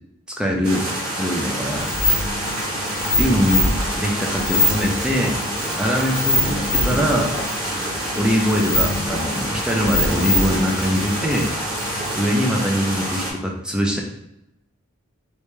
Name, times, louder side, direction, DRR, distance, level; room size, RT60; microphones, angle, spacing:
voice 1, 0.4-0.9 1.2-1.9 3.2-5.5 5.8-7.4 8.2-11.7 12.2-14.0, equal, 5° right, 0 dB, 0.4 m, -22 dB
sound 1, 0.6-13.3, right 1 dB, 90° right, 1.4 m, -27 dB
sound 2, 1.7-12.2, left 1 dB, 70° left, 1.0 m, -25 dB
3.3 x 2.7 x 3.1 m, 0.88 s
head